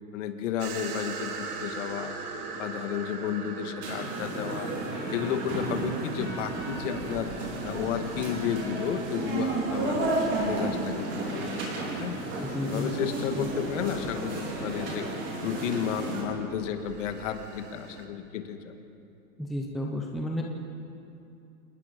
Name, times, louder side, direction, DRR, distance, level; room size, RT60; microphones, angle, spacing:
voice 1, 0.1-2.1 2.5-4.7 5.1-7.3 7.6-10.1 10.4-11.5 12.0-12.2 12.6-15.1 15.4-18.8, left 9 dB, 55° left, 7 dB, 1.9 m, -32 dB
sound 1, 0.6-18.1, right 4 dB, 90° right, 3.0 m, -42 dB
sound 2, 3.8-16.2, right 2 dB, 25° right, 4.3 m, -32 dB
voice 2, 12.4-12.9 13.4-13.5 19.4-20.4, left 1 dB, ahead, 0 dB, 0.6 m, -32 dB
28.0 x 19.5 x 5.2 m, 2.7 s
supercardioid pair, 155°, 45 cm